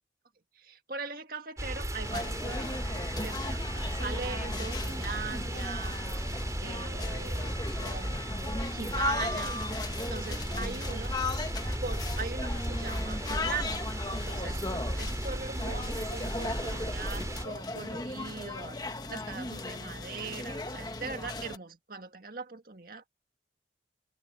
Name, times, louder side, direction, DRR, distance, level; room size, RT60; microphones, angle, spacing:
voice 1, 0.5-2.9 3.2-6.0 6.6-9.6 10.1-11.2 11.8-13.9 14.1-23.1, right 4 dB, 50° right, 1.9 m, -41 dB
sound 1, 1.6-17.4, right 1 dB, 20° right, 4.4 m, -35 dB
sound 2, 2.0-21.6, left 2 dB, 20° left, 1.3 m, -37 dB
head